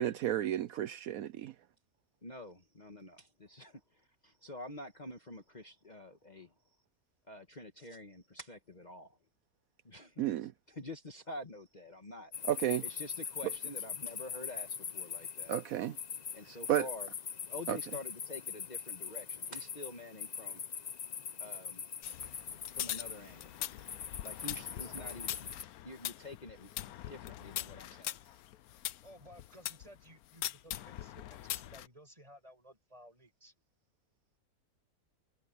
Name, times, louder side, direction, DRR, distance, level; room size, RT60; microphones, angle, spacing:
voice 1, 0.0-1.5 10.2-10.5 12.5-12.8 15.5-16.0 16.7-16.9 17.7-17.8, right 12 dB, 75° right, 1.1 m, -32 dB
voice 2, 2.2-6.5 7.3-9.2 9.8-10.3 10.7-12.3 12.8-15.5 16.3-17.1 17.4-20.6 21.4-22.0 22.8-23.5 24.2-25.4 25.8-28.3, left 2 dB, 30° left, 1.5 m, -48 dB
sound 1, 12.3-25.6, left 7 dB, 50° left, 0.5 m, -42 dB
sound 2, 22.0-29.9 30.4-31.9, left 13 dB, 80° left, 1.1 m, -42 dB
voice 3, 24.8-25.2 29.0-33.5, equal, 25° right, 6.7 m, -56 dB
omnidirectional pair, 1.6 m